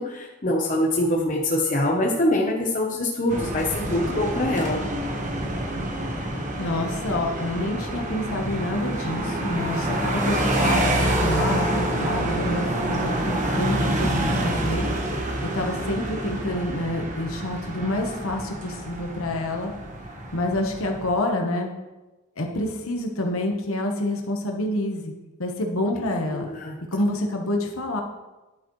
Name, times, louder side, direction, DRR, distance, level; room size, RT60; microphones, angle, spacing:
voice 1, 0.0-4.8 26.3-26.8, left 1 dB, 35° left, -1 dB, 1.0 m, -24 dB
sound 1, 3.3-21.1, right 1 dB, 35° right, 1.3 m, -27 dB
voice 2, 6.6-19.7 20.3-21.7 22.4-25.1 25.4-26.5 26.9-28.0, left 1 dB, 85° left, 2 dB, 1.3 m, -28 dB
11.0 x 8.5 x 3.2 m, 1.1 s
head